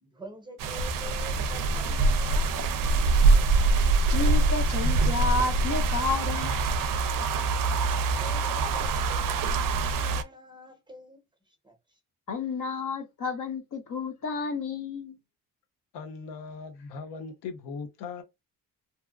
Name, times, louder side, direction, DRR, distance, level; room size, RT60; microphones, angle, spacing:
voice 1, 0.0-3.1 8.0-11.2 11.6-11.7, right 1 dB, 10° right, 0.8 m, -46 dB
sound 1, 0.6-10.2, right 3 dB, 55° right, 0.5 m, -24 dB
voice 2, 4.1-6.7 12.3-15.2, left 3 dB, 55° left, 0.9 m, -31 dB
voice 3, 15.9-18.2, left 5 dB, 90° left, 0.8 m, -39 dB
2.8 x 2.2 x 2.3 m
cardioid pair, 90°, 39 cm